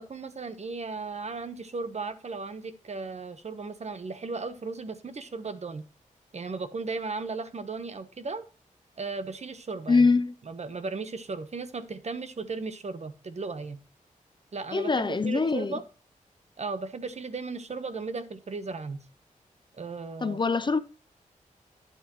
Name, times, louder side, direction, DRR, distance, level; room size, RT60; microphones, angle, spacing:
voice 1, 0.0-5.8 6.3-8.4 9.0-10.1 10.4-13.8 14.5-15.8 16.6-19.0 19.7-20.4, right 4 dB, 55° right, 1.1 m, -36 dB
voice 2, 9.9-10.3 14.7-15.8 20.2-20.8, left 4 dB, 35° left, 0.5 m, -23 dB
11.0 x 8.4 x 3.1 m
cardioid pair, 60°, 14 cm